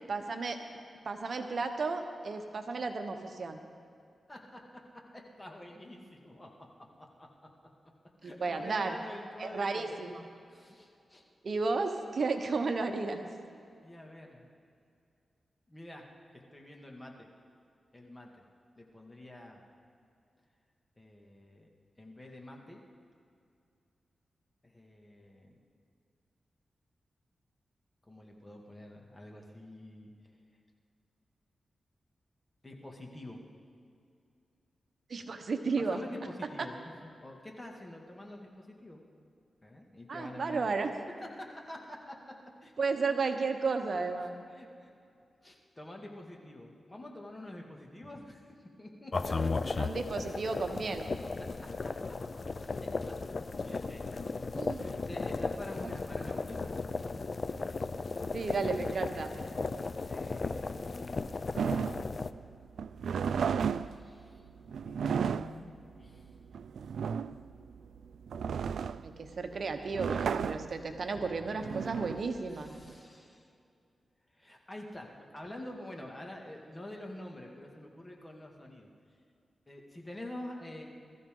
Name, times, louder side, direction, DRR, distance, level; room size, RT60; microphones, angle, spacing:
voice 1, 0.1-0.6 1.0-3.6 8.2-9.0 9.4-10.2 11.4-13.2 35.1-36.0 40.1-40.9 42.8-44.4 49.8-51.1 54.5-54.9 55.8-55.9 58.3-59.3 69.0-72.8, right 4 dB, 60° right, 6 dB, 1.1 m, -33 dB
voice 2, 4.3-4.6 5.1-6.7 7.2-7.3 8.2-9.9 10.5-11.2 13.8-14.5 15.7-16.0 16.3-17.3 17.9-18.4 18.8-19.6 21.0-21.7 22.0-22.8 24.6-25.6 28.1-30.1 32.6-33.4 35.8-36.9 37.2-39.0 39.6-40.6 41.2-42.2 42.6-42.7 44.5-44.9 45.4-49.3 51.4-51.5 51.8-51.9 53.0-53.1 53.6-56.8 57.1-57.3 59.6-62.3 63.2-64.4 64.8-66.4 72.5-73.5 74.3-78.9 79.7-80.8, left 1 dB, 25° left, 0 dB, 2.2 m, -47 dB
sound 1, 49.1-62.3, left 3 dB, 45° left, 0.5 m, -36 dB
sound 2, 61.6-72.9, right 7 dB, 85° right, 0.3 m, -34 dB
21.5 x 14.0 x 3.9 m, 2.4 s
cardioid pair, 85°, 0 cm